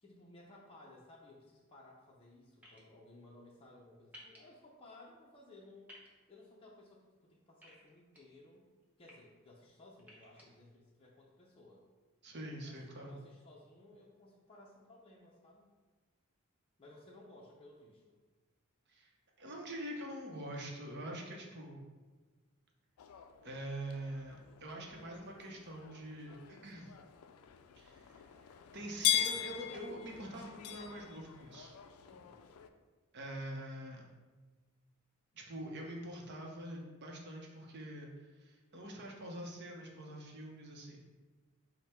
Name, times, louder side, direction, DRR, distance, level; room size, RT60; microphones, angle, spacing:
voice 1, 0.0-6.0 6.3-8.6 9.0-11.8 12.6-15.7 16.8-18.1 32.0-32.5, left 2 dB, 25° left, -4 dB, 0.5 m, -58 dB
sound 1, 2.6-2.8 4.1-4.4 5.9-6.1 7.6-8.2 8.8-9.1 10.0-10.4, left 1 dB, 5° right, 0.8 m, -55 dB
voice 2, 12.2-13.1 18.9-19.1 19.4-21.8 23.4-26.9 27.8-28.2 28.7-31.7 33.1-34.0 35.3-38.1 38.4-41.0, right 1 dB, 50° right, 0 dB, 0.7 m, -45 dB
sound 2, 23.0-32.7, left 10 dB, 90° left, 0.3 m, -40 dB
5.2 x 2.1 x 4.3 m, 1.3 s
head